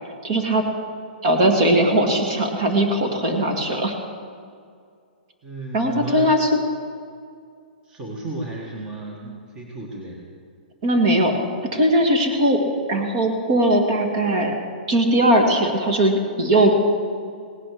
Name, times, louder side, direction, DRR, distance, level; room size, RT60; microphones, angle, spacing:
voice 1, 0.2-0.6 1.2-3.9 5.7-6.5 10.8-11.3 11.7-12.6 12.9-14.5 14.9-16.7, right 1 dB, 35° right, 3 dB, 1.9 m, -19 dB
voice 2, 5.4-6.3 7.8-10.2, right 2 dB, 15° right, -2 dB, 1.5 m, -34 dB
17.5 x 10.0 x 6.4 m, 2.2 s
hypercardioid pair, 165°, 5 cm